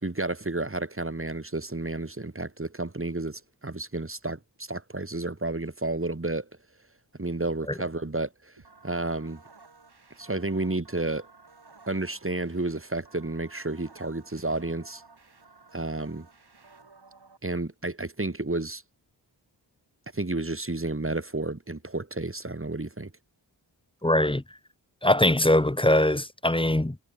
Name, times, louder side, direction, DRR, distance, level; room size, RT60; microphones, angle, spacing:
voice 1, 0.0-6.5 7.2-8.5 8.8-9.4 10.2-11.3 11.9-15.0 15.7-16.3 17.4-18.8 20.1-23.1, right 2 dB, 30° right, 3.0 m, -31 dB
sound 1, 8.6-17.4, right 4 dB, 60° right, 5.6 m, -55 dB
voice 2, 24.0-24.4 25.0-27.0, left 1 dB, 10° left, 1.4 m, -22 dB
wide cardioid pair, 50°, 43 cm